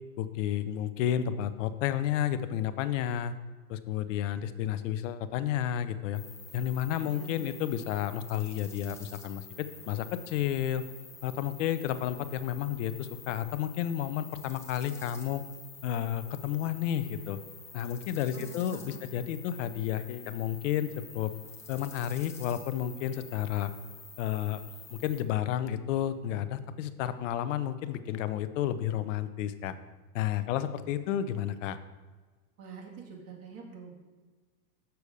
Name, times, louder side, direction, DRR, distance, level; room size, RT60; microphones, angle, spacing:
voice 1, 0.2-3.4 3.7-6.2 6.5-10.8 11.2-15.4 15.8-17.4 17.7-20.9 21.1-21.3 21.7-23.7 24.2-24.6 24.9-29.7 30.1-31.8, left 10 dB, 55° left, 12 dB, 0.7 m, -31 dB
sound 1, 6.1-25.2, left 5 dB, 5° left, 0.4 m, -49 dB
voice 2, 7.0-7.6 18.3-19.1 32.6-33.9, right 5 dB, 30° right, -1 dB, 2.0 m, -46 dB
6.9 x 6.1 x 5.0 m, 1.4 s
hypercardioid pair, 130°, 46 cm